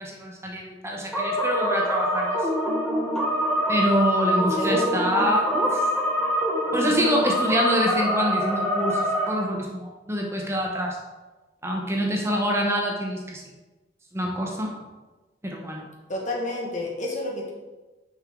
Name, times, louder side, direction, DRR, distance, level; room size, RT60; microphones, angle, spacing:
voice 1, 0.0-2.5 3.7-5.8 6.7-11.0 11.6-13.4 14.1-14.7 15.4-15.9, equal, 15° right, 0 dB, 0.8 m, -26 dB
sound 1, 1.1-9.3, equal, 5° left, 1.2 m, -25 dB
voice 2, 4.6-5.0 16.1-17.5, left 1 dB, 45° left, -1 dB, 1.4 m, -29 dB
6.1 x 5.7 x 3.7 m, 1.2 s
head